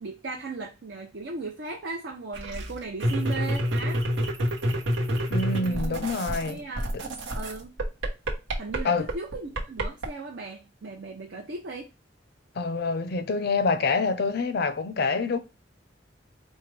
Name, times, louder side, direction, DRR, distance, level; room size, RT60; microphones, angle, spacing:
voice 1, 0.0-4.0 5.5-6.0 6.3-7.0 7.3-7.7 8.6-11.9, right 3 dB, 65° right, 0.7 m, -37 dB
sound 1, 2.3-6.5 6.8-10.1, equal, 85° right, 1.0 m, -27 dB
voice 2, 5.3-6.6 6.9-7.0 8.8-9.1 12.6-15.4, left 4 dB, 55° left, 0.5 m, -26 dB
4.6 x 2.2 x 3.2 m
head